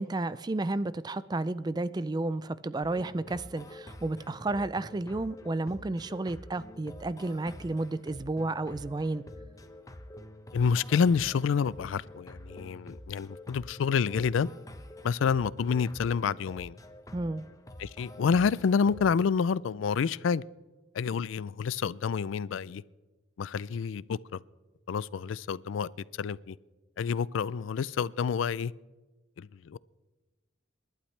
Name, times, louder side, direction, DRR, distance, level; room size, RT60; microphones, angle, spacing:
voice 1, 0.0-9.2 17.1-17.4, right 2 dB, 20° right, 0.4 m, -32 dB
sound 1, 2.8-19.3, left 1 dB, 20° left, 0.8 m, -47 dB
voice 2, 10.5-14.5 15.0-16.8 17.8-20.4 20.9-22.8 23.4-24.4 24.9-25.9 26.2-26.6 27.0-28.7 29.4-29.8, left 6 dB, 85° left, 0.4 m, -28 dB
28.5 x 11.5 x 3.3 m
head